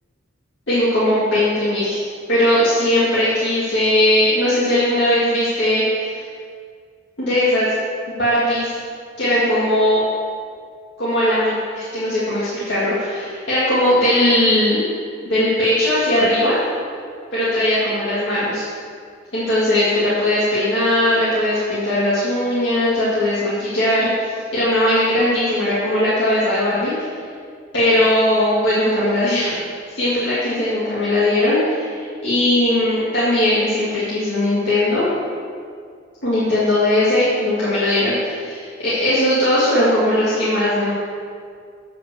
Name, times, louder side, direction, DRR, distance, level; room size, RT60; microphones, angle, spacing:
voice 1, 0.7-2.0 2.3-6.2 7.2-7.7 8.1-8.7 9.2-10.0 11.0-14.9 15.2-16.6 17.3-18.6 19.3-26.9 27.7-29.6 29.9-35.1 36.2-40.9, left 1 dB, 60° left, -11 dB, 2.0 m, -19 dB
8.0 x 5.2 x 7.0 m, 2.1 s
head